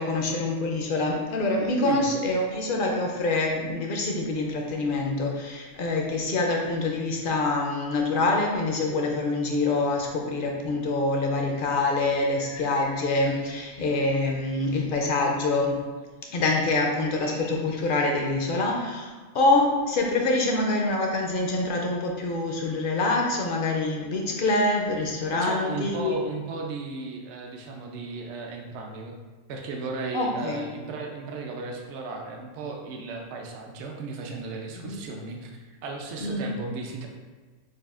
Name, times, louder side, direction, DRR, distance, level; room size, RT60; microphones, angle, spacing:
voice 1, 0.0-15.8 16.3-26.2 30.1-30.7 34.8-35.0 36.2-36.6, left 2 dB, 65° left, 1 dB, 0.5 m, -25 dB
sound 1, 11.5-14.1 14.4-15.4 16.6-18.0, left 3 dB, 90° left, 1.0 m, -47 dB
voice 2, 25.3-29.1 29.5-37.1, right 3 dB, 70° right, 2 dB, 0.8 m, -35 dB
6.3 x 2.4 x 2.4 m, 1.3 s
omnidirectional pair, 1.3 m